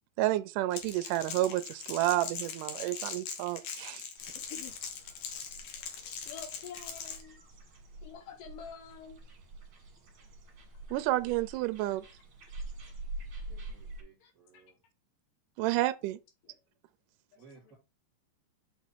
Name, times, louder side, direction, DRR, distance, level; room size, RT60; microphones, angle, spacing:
voice 1, 0.2-4.0 10.9-12.0 15.6-16.2, right 16 dB, 80° right, 2.0 m, -30 dB
Crackle, 0.7-7.2, left 7 dB, 65° left, 2.4 m, -41 dB
sound 1, 4.2-14.0, right 2 dB, 45° right, 2.2 m, -46 dB
voice 2, 6.3-7.4 8.0-9.2 14.2-14.6 16.5-16.6, left 7 dB, 85° left, 2.6 m, -47 dB
voice 3, 13.5-14.8 17.4-17.8, right 4 dB, 25° right, 3.1 m, -58 dB
6.3 x 4.1 x 4.5 m
omnidirectional pair, 3.8 m